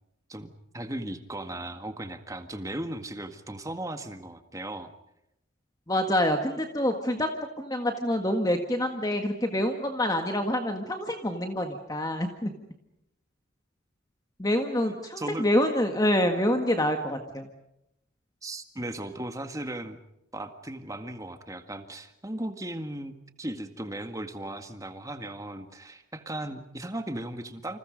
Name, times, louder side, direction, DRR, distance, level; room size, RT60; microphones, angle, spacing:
voice 1, 0.3-4.9 14.8-15.5 18.4-20.0 20.3-27.8, right 1 dB, 15° right, 7 dB, 1.8 m, -37 dB
voice 2, 5.9-7.3 7.6-12.5 14.4-17.5, left 1 dB, 20° left, 5 dB, 1.7 m, -26 dB
28.5 x 27.5 x 5.3 m, 0.83 s
head